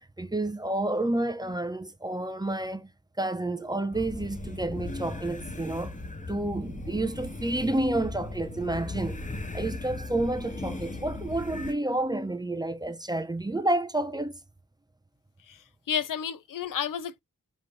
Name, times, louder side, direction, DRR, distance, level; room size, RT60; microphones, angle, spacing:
voice 1, 0.2-2.9 3.2-6.0 6.3-9.2 9.5-14.4, right 2 dB, 15° right, 0.5 m, -30 dB
sound 1, 3.9-11.7, left 2 dB, 25° left, 0.7 m, -37 dB
voice 2, 15.5-17.2, left 8 dB, 80° left, 0.5 m, -32 dB
4.8 x 3.0 x 2.6 m
wide cardioid pair, 120°, 32 cm